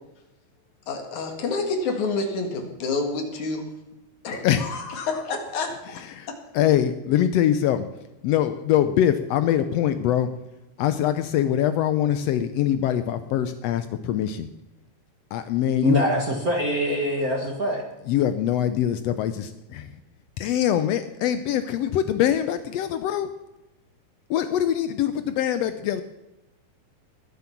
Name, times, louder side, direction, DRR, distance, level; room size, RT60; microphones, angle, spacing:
voice 1, 0.9-3.7 4.2-5.8, left 3 dB, 65° left, 4 dB, 3.2 m, -28 dB
voice 2, 4.4-5.0 5.9-6.3 6.5-7.9 8.2-10.3 10.8-14.5 15.3-16.1 18.1-20.0 20.4-23.3 24.3-26.0, left 10 dB, 85° left, 11 dB, 1.4 m, -23 dB
voice 3, 15.8-17.8, equal, 35° right, 1 dB, 1.5 m, -24 dB
21.0 x 7.7 x 5.9 m, 0.97 s
omnidirectional pair, 3.7 m